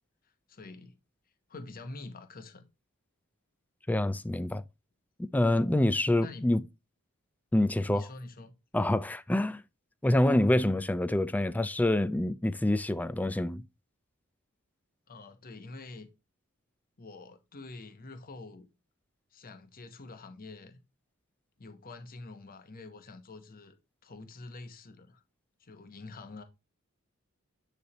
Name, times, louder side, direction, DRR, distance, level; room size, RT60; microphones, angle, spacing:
voice 1, 0.5-0.9 1.5-2.7 6.2-6.5 7.9-8.5 15.1-16.1 17.0-18.7 19.3-20.8 21.6-23.8 24.0-25.2 25.6-26.4, left 3 dB, 45° left, 0.9 m, -46 dB
voice 2, 3.9-4.6 5.3-6.6 7.5-8.1 8.7-9.6 10.0-13.6, left 1 dB, 5° left, 0.3 m, -26 dB
9.6 x 3.3 x 4.1 m
head